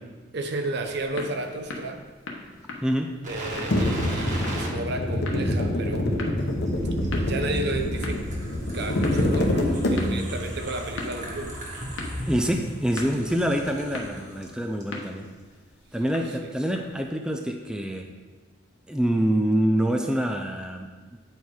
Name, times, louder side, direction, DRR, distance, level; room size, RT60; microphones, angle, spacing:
voice 1, 0.3-2.0 3.3-6.1 6.4-6.5 7.2-8.2 8.7-11.6 16.4-16.5, right 2 dB, 60° right, 6 dB, 0.7 m, -32 dB
sound 1, 0.6-17.1, left 2 dB, 80° left, 1.1 m, -41 dB
voice 2, 2.8-3.2 12.3-15.3 15.9-18.1 18.9-21.2, equal, 5° right, 3 dB, 0.4 m, -26 dB
sound 2, 3.2-14.5 14.8-14.9, equal, 40° right, 1.5 m, -36 dB
sound 3, 3.7-10.4, left 1 dB, 60° left, 0.8 m, -26 dB
8.4 x 4.5 x 4.7 m, 1.3 s
head